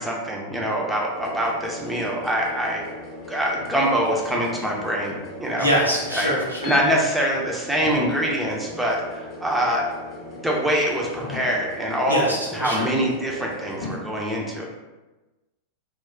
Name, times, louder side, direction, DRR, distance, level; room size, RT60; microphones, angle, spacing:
voice 1, 0.0-2.8 3.3-5.7 6.1-6.3 6.6-9.8 10.4-12.2 12.5-14.7, equal, 5° right, -3 dB, 0.6 m, -24 dB
sound 1, 1.1-6.9 7.3-14.0, left 1 dB, 30° left, 0.7 m, -38 dB
voice 2, 5.6-6.7 12.1-12.9, equal, 90° right, -5 dB, 0.7 m, -24 dB
2.3 x 2.2 x 3.6 m, 1.1 s
figure-of-eight pair, 90°, 0 cm